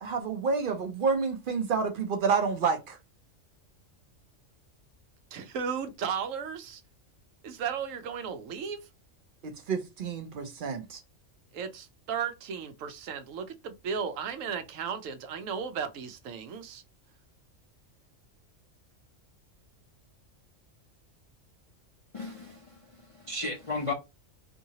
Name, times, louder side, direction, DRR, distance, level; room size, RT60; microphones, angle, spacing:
voice 1, 0.0-3.0 9.4-11.0, right 5 dB, 60° right, 0.6 m, -29 dB
voice 2, 5.3-6.8 7.4-8.9 11.5-16.8, right 6 dB, 85° right, 1.0 m, -35 dB
voice 3, 22.1-22.8 23.1-23.9, left 3 dB, 50° left, 0.4 m, -34 dB
2.7 x 2.7 x 2.8 m
omnidirectional pair, 1.3 m